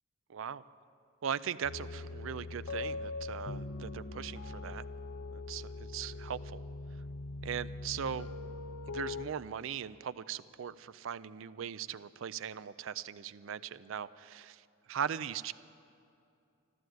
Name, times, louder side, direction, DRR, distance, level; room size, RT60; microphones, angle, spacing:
voice 1, 0.3-0.6 1.2-4.8 5.3-6.6 7.4-8.3 8.9-14.5 14.9-15.5, right 8 dB, 80° right, 15 dB, 0.4 m, -39 dB
sound 1, 1.6-9.2, left 3 dB, 85° left, 0.6 m, -41 dB
13.5 x 12.5 x 7.8 m, 2.6 s
head